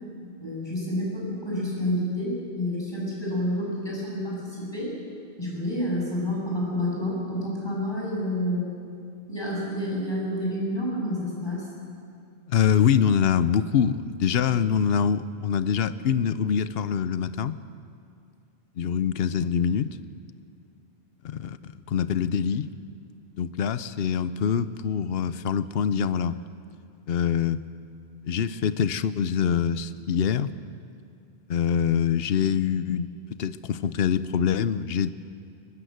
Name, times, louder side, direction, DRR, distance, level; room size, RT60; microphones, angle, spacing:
voice 1, 0.4-4.9 5.4-8.7 9.3-11.7, left 1 dB, 25° left, -5 dB, 7.9 m, -29 dB
voice 2, 12.5-17.6 18.8-20.0 21.2-22.7 23.4-26.4 27.1-27.6 28.3-30.5 31.5-33.1 33.4-35.1, left 8 dB, 70° left, 14 dB, 0.9 m, -24 dB
23.0 x 20.5 x 8.0 m, 2.4 s
omnidirectional pair, 1.1 m